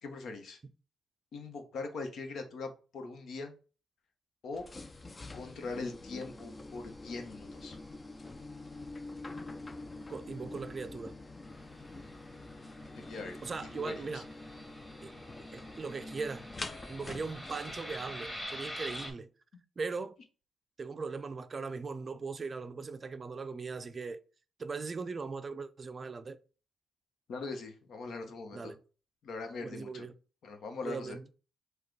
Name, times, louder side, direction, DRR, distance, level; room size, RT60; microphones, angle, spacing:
voice 1, 0.0-0.6 1.3-3.5 4.4-4.7 5.3-7.8 12.9-14.2 27.3-28.7 29.2-30.1 30.4-31.2, left 3 dB, 65° left, 1.0 m, -41 dB
sound 1, 4.5-18.4, left 2 dB, 25° left, 0.5 m, -46 dB
voice 2, 10.1-11.2 13.4-14.2 15.0-15.1 15.5-16.5 16.9-19.3 19.8-20.2 20.8-24.2 24.6-26.4 28.5-28.8 29.6-30.1 30.8-31.2, right 4 dB, 35° right, 0.4 m, -39 dB
Fixed-wing aircraft airplane, 11.4-19.1, left 1 dB, 10° left, 1.7 m, -46 dB
4.8 x 2.3 x 4.6 m
cardioid pair, 85°, 0 cm